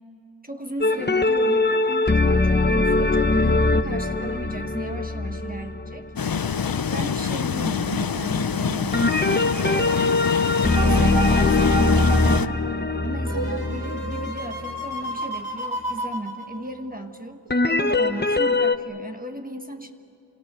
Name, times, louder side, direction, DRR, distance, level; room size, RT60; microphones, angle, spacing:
voice 1, 0.4-6.1 6.9-10.2 10.8-12.6 13.0-17.4 17.7-19.9, right 1 dB, 20° right, 5 dB, 1.4 m, -35 dB
sound 1, 0.8-6.5 8.9-14.9 17.5-18.8, left 2 dB, 20° left, 1.0 m, -22 dB
sound 2, 6.2-12.5, left 6 dB, 50° left, 0.7 m, -26 dB
sound 3, 10.7-17.0 17.5-17.6, right 2 dB, 80° right, 3.2 m, -31 dB
29.5 x 26.5 x 6.8 m, 2.9 s
wide cardioid pair, 60°, 47 cm